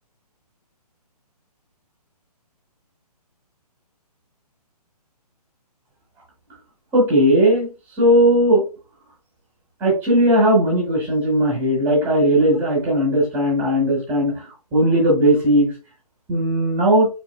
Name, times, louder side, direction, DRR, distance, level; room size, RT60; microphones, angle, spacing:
voice 1, 6.9-7.7 8.0-8.6 9.8-14.4 14.7-15.7 16.3-17.1, right 1 dB, 10° right, -2 dB, 1.8 m, -17 dB
4.5 x 4.1 x 2.3 m, 0.31 s
hypercardioid pair, 170°, 21 cm